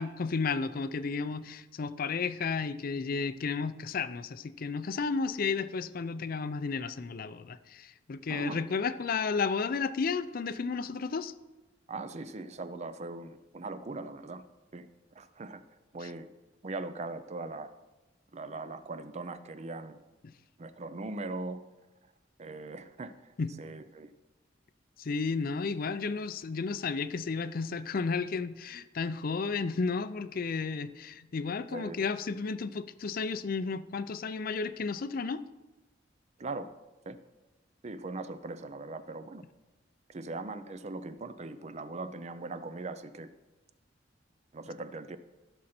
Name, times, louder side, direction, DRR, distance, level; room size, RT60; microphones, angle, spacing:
voice 1, 0.0-11.3 16.0-16.1 20.2-20.3 23.4-23.5 25.0-35.4, left 4 dB, 50° left, 13 dB, 0.5 m, -33 dB
voice 2, 8.3-8.6 11.9-14.4 14.7-14.9 15.1-15.6 15.9-16.3 16.6-17.7 18.3-20.0 20.6-21.6 22.4-24.1 31.7-32.0 36.4-36.7 37.1-37.2 37.8-39.4 40.1-43.3 44.5-45.2, right 3 dB, 35° right, 12 dB, 0.5 m, -40 dB
15.0 x 6.4 x 4.3 m, 1.1 s
head